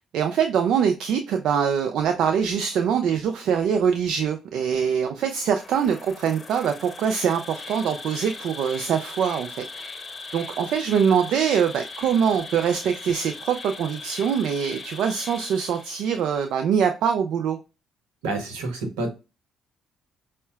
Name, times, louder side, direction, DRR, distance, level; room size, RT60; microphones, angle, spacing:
voice 1, 0.0-9.6 10.3-17.6, right 7 dB, 70° right, 0.4 m, -23 dB
Insect, 5.5-16.3, left 4 dB, 30° left, 0.8 m, -39 dB
voice 2, 18.2-19.1, right 2 dB, 85° right, 0.9 m, -28 dB
5.3 x 2.1 x 2.3 m
hypercardioid pair, 55°, 0 cm